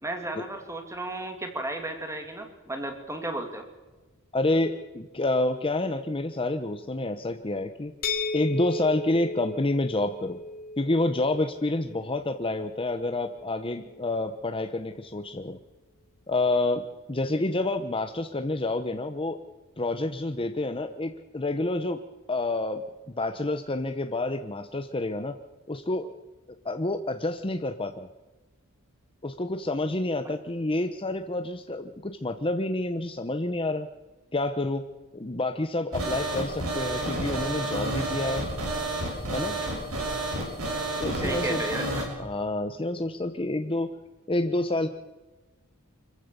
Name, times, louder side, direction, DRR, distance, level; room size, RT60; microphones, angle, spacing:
voice 1, 0.0-3.6 41.2-42.1, right 1 dB, 15° right, 5 dB, 2.6 m, -34 dB
voice 2, 4.3-7.9 8.3-10.4 10.8-15.6 16.3-16.8 17.1-19.4 19.8-22.0 22.3-25.3 25.7-26.1 26.6-28.1 29.2-33.9 34.3-34.8 35.1-38.5 39.3-39.6 41.0-41.7 42.2-43.9 44.3-44.9, left 2 dB, 25° left, 8 dB, 0.9 m, -28 dB
sound 1, 8.0-13.8, left 3 dB, 45° left, 1.7 m, -36 dB
sound 2, 35.9-42.0, right 2 dB, 80° right, 6.6 m, -30 dB
25.5 x 15.0 x 6.9 m, 1.2 s
head